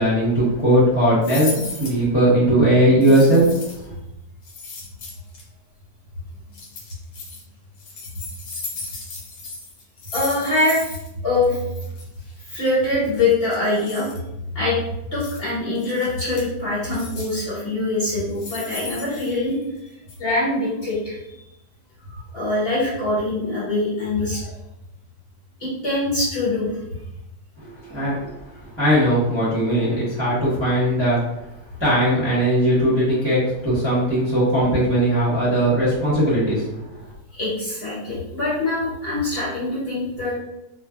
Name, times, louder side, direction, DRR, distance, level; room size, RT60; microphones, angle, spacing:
voice 1, 0.0-3.5 3.7-3.9 27.6-28.3 28.7-31.3 31.8-36.9, right 1 dB, 10° right, -11 dB, 0.8 m, -19 dB
sound 1, 1.2-2.0 3.0-3.9 4.4-5.4 6.5-7.4 7.8-11.1 11.3-11.5 11.8-12.0 13.1-14.2 15.2-15.4 15.8-16.5 16.9-17.5 18.1-19.8 20.1-20.2, left 3 dB, 75° left, 1.1 m, -36 dB
voice 2, 10.1-11.6 12.4-14.1 14.5-14.8 15.1-19.6 20.2-21.5 22.1-24.5 25.6-26.7 37.3-40.4, left 2 dB, 45° left, -9 dB, 1.2 m, -23 dB
2.5 x 2.5 x 2.3 m, 0.88 s
omnidirectional pair, 1.6 m